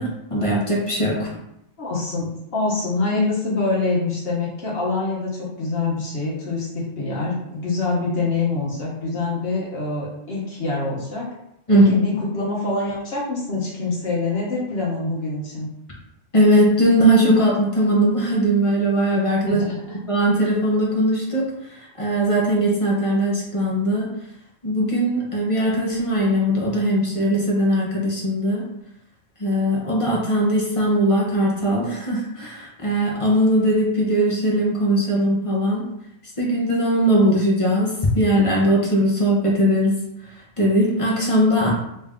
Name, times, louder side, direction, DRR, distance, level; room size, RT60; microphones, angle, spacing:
voice 1, 0.0-1.4 11.7-11.9 16.3-19.6 20.1-21.4 21.8-24.1 24.6-28.6 29.4-35.8 36.4-40.0 40.6-41.7, equal, 30° left, -3 dB, 0.7 m, -19 dB
voice 2, 1.8-11.3 11.7-15.7 19.5-20.0, left 3 dB, 50° left, -6 dB, 1.3 m, -25 dB
3.3 x 2.6 x 3.6 m, 0.81 s
omnidirectional pair, 1.4 m